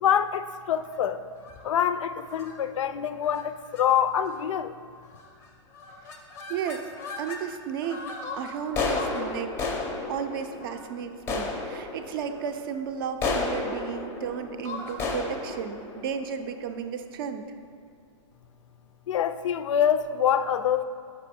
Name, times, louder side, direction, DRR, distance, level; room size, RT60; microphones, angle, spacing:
voice 1, 0.0-1.2 1.6-4.7 19.1-20.8, left 9 dB, 80° left, 12 dB, 0.4 m, -25 dB
sound 1, 1.4-1.7 2.3-2.5 3.2-3.4 3.7-3.8 4.2-4.6 5.1-5.5 5.7-7.4 7.8-17.0, left 3 dB, 15° left, 0.5 m, -34 dB
voice 2, 6.5-6.9 7.2-9.7 10.1-17.4, right 7 dB, 45° right, 8 dB, 0.5 m, -34 dB
6.1 x 5.3 x 4.2 m, 2.1 s
hypercardioid pair, 155°, 16 cm